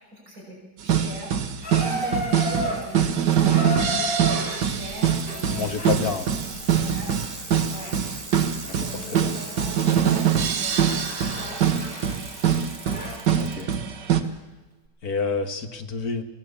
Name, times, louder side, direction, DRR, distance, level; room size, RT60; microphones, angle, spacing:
voice 1, 0.1-6.1 6.5-7.2 7.7-7.9 8.7-11.7, equal, 55° right, -3 dB, 6.5 m, -39 dB
sound 1, 0.8-14.2, right 8 dB, 85° right, 1.9 m, -24 dB
Water tap faucet / Bathtub (filling or washing), 1.6-13.3 14.2-14.3, equal, 30° left, 4.0 m, -35 dB
Bicycle, 4.3-13.7 14.8-14.9, right 2 dB, 30° right, 2.4 m, -42 dB
voice 2, 5.5-6.4 8.7-9.3 13.4-13.7 15.0-16.2, left 5 dB, 60° left, 7 dB, 2.0 m, -29 dB
23.0 x 18.0 x 7.1 m, 1.2 s
omnidirectional pair, 1.8 m